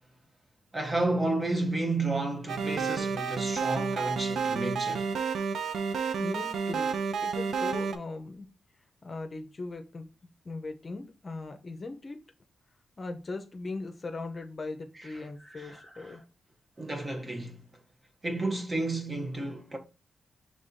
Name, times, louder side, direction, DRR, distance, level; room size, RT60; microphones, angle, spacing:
voice 1, 0.7-5.1 15.0-15.1 15.4-16.2 16.8-17.6 18.2-19.8, right 2 dB, 30° right, 1.0 m, -31 dB
sound 1, 2.5-8.0, right 5 dB, 80° right, 0.4 m, -30 dB
voice 2, 6.2-8.5 9.0-10.1 10.4-12.2 13.0-16.2, left 3 dB, 40° left, 0.6 m, -39 dB
5.4 x 3.5 x 2.6 m
cardioid pair, 75°, 0 cm